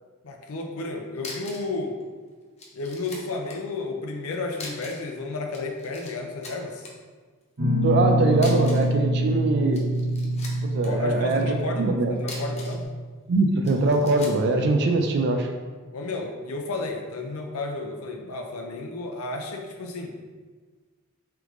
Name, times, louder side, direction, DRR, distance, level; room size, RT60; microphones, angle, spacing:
voice 1, 0.2-1.9 2.7-6.9 10.9-12.8 15.9-20.2, left 2 dB, 85° left, 2 dB, 0.6 m, -32 dB
sound 1, 0.8-0.9 1.2-1.7 2.0-2.1 2.6-3.6 4.5-5.1 5.4-6.1 6.4-6.9 8.3-8.9 9.6-10.9 12.1-12.9 13.6-14.4, left 2 dB, 30° left, 0.6 m, -41 dB
Guitar, 7.6-12.8, right 1 dB, 80° right, 1.2 m, -25 dB
voice 2, 7.8-9.8 10.6-12.1 13.3-15.5, right 2 dB, 50° right, 4 dB, 0.3 m, -22 dB
3.6 x 3.4 x 3.1 m, 1.4 s
head